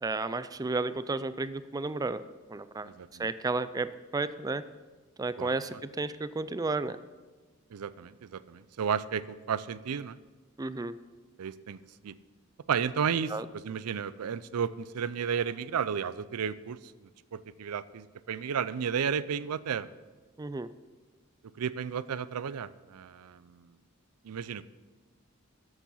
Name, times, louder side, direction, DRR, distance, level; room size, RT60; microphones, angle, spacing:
voice 1, 0.0-2.2 2.5-2.9 3.2-4.6 5.2-7.0 10.6-10.9 13.3-13.5 20.4-20.7, right 3 dB, 15° right, 14 dB, 0.3 m, -32 dB
voice 2, 2.8-3.3 5.4-5.8 7.7-10.2 11.4-11.8 12.0-12.1 12.7-16.8 17.3-19.9 21.6-23.6 24.2-24.6, right 7 dB, 85° right, 17 dB, 0.5 m, -33 dB
13.0 x 7.3 x 5.6 m, 1.3 s
head